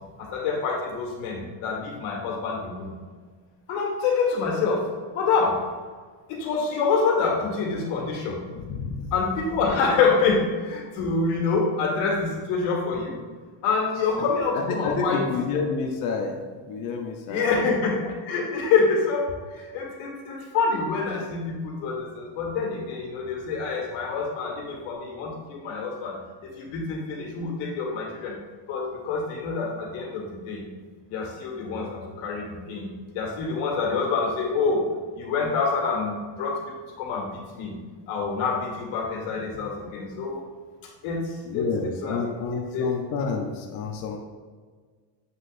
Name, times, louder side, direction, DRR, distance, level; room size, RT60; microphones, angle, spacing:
voice 1, 0.2-2.9 3.7-5.8 6.3-8.4 9.1-13.2 13.6-15.3 17.3-26.2 26.6-28.4 28.7-30.7 31.1-32.9 33.1-34.9 35.1-37.8 38.1-40.4 41.0-41.7 42.0-42.3 42.7-42.9, left 4 dB, 80° left, 0 dB, 1.9 m, -26 dB
voice 2, 8.5-9.1 14.5-17.6 18.0-18.1 25.1-25.2 41.4-44.2, left 4 dB, 45° left, 1 dB, 0.7 m, -29 dB
7.5 x 6.2 x 2.5 m, 1.5 s
cardioid pair, 175°, 50 cm